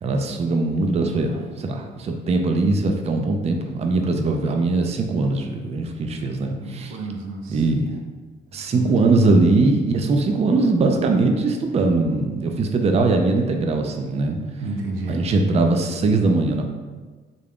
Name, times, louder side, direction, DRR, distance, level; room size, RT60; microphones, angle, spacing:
voice 1, 0.0-6.9 7.5-7.8 8.5-14.4 15.1-16.6, right 3 dB, 30° right, 3 dB, 0.4 m, -21 dB
voice 2, 6.7-7.7 8.7-9.1 14.6-15.2, right 3 dB, 85° right, 2 dB, 0.5 m, -31 dB
3.7 x 2.2 x 3.5 m, 1.4 s
cardioid pair, 90°, 20 cm